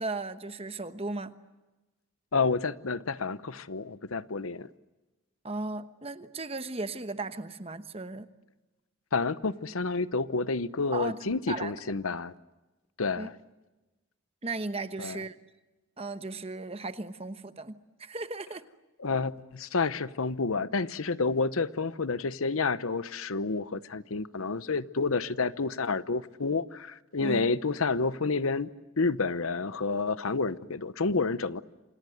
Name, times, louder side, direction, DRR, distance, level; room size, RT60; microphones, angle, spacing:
voice 1, 0.0-1.3 5.4-8.3 10.9-11.8 13.2-13.3 14.4-15.3 16.0-18.6 27.2-27.5, right 3 dB, 30° right, 1.1 m, -36 dB
voice 2, 2.3-4.7 9.1-12.3 13.0-13.3 15.0-15.2 19.0-28.7 29.0-31.6, left 4 dB, 80° left, 0.9 m, -29 dB
28.0 x 26.5 x 8.0 m
head